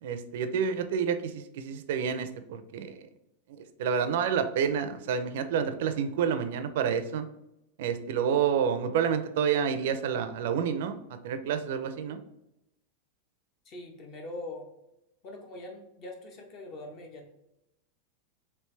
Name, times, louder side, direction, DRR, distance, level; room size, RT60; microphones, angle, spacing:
voice 1, 0.0-3.1 3.8-7.3 7.8-11.0 11.2-12.2, right 7 dB, 65° right, 9 dB, 0.4 m, -29 dB
voice 2, 13.6-14.7 15.2-17.3, left 2 dB, 35° left, 2 dB, 0.7 m, -42 dB
3.3 x 2.9 x 3.2 m, 0.85 s
supercardioid pair, 150°, 0 cm